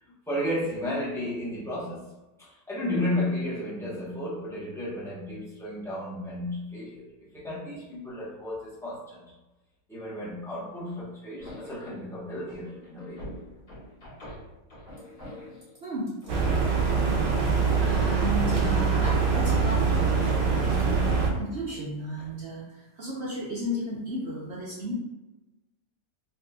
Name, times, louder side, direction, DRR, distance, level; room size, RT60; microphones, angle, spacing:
voice 1, 0.3-2.1 2.4-7.0 7.3-9.2 9.9-13.2, left 1 dB, 5° left, -9 dB, 0.6 m, -33 dB
sound 1, 11.4-12.0 12.5-15.7 16.2-19.6 19.9-21.8 22.2-22.4, left 1 dB, 35° left, 1.4 m, -42 dB
voice 2, 15.8-16.1 17.8-20.2 20.5-21.0 21.3-24.9, equal, 55° right, -6 dB, 0.7 m, -34 dB
sound 2, 16.3-21.3, right 5 dB, 80° right, 1.2 m, -24 dB
3.9 x 2.7 x 2.4 m, 1.0 s
omnidirectional pair, 1.9 m